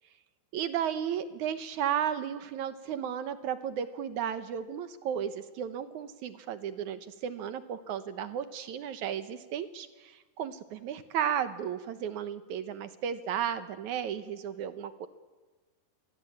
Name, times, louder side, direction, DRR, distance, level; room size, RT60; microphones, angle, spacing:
voice 1, 0.5-15.1, right 9 dB, 65° right, 11 dB, 2.0 m, -34 dB
29.5 x 23.0 x 8.7 m, 1.3 s
omnidirectional pair, 4.6 m